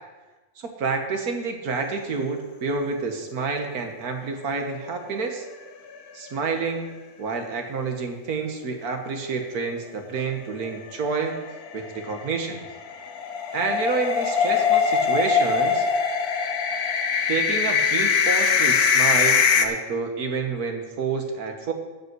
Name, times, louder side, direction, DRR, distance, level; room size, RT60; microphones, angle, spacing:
voice 1, 0.6-5.4 6.1-6.9 7.2-11.4 11.7-12.6 13.5-15.8 17.3-21.7, right 4 dB, 80° right, 4 dB, 1.8 m, -28 dB
sound 1, 4.7-5.6 6.0-6.1 6.4-6.5 10.6-19.7, left 6 dB, 90° left, 1.4 m, -22 dB
15.5 x 5.5 x 6.2 m, 1.2 s
omnidirectional pair, 1.6 m